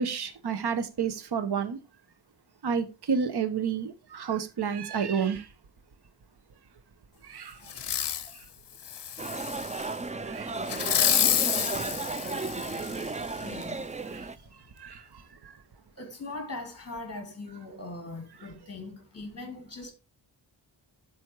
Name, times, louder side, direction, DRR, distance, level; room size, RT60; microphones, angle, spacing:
voice 1, 0.0-1.8 2.6-5.5 7.3-7.6 10.2-10.5 11.2-11.9 12.8-12.9 14.1-14.3 14.8-15.0 15.4-15.5, right 6 dB, 55° right, 1.0 m, -30 dB
Fireworks, 7.7-8.3 8.8-9.9 10.7-13.1 13.6-13.7, left 9 dB, 60° left, 0.7 m, -28 dB
sound 1, 9.2-14.4, right 3 dB, 15° right, 0.3 m, -34 dB
voice 2, 11.9-12.8 13.4-13.7 16.0-19.9, left 2 dB, 30° left, 2.7 m, -41 dB
10.5 x 4.3 x 4.6 m
wide cardioid pair, 130°, 46 cm